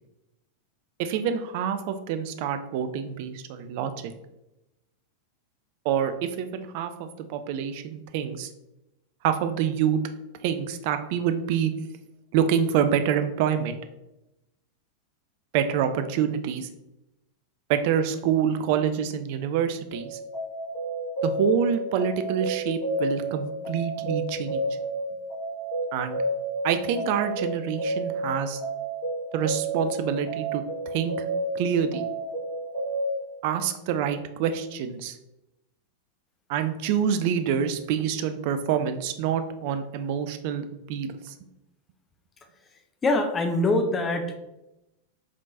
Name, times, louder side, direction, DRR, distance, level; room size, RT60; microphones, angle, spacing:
voice 1, 1.0-4.1 5.8-8.5 9.2-10.0 10.4-11.7 12.3-13.8 15.5-16.7 17.7-20.2 21.2-24.6 25.9-26.2 26.6-28.6 29.3-31.1 31.5-32.0 33.4-35.2 36.5-41.3, right 8 dB, 45° right, 9 dB, 0.4 m, -26 dB
sound 1, 19.9-33.2, right 1 dB, 55° left, 1.4 m, -31 dB
voice 2, 43.0-44.4, left 2 dB, 20° left, 6 dB, 0.6 m, -23 dB
4.9 x 3.6 x 2.7 m, 0.93 s
figure-of-eight pair, 90°, 0 cm